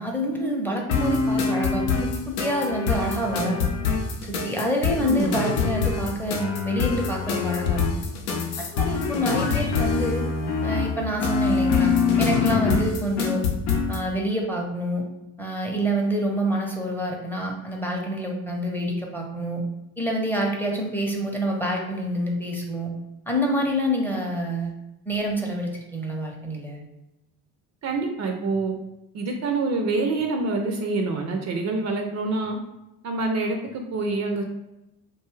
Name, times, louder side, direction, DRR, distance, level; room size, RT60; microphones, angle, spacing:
voice 1, 0.0-1.9 2.3-3.7 4.2-8.1 8.6-10.3 10.6-13.6 13.9-15.1 15.4-19.7 20.0-22.9 23.3-24.7 25.1-26.8, equal, 5° left, 0 dB, 0.6 m, -27 dB
sound 1, 0.9-14.0, left 5 dB, 85° left, 0.6 m, -24 dB
voice 2, 5.0-5.4 27.8-28.7 29.1-32.6 33.0-34.4, right 3 dB, 45° right, 3 dB, 0.5 m, -26 dB
2.6 x 2.3 x 3.0 m, 0.95 s
supercardioid pair, 75°, 40 cm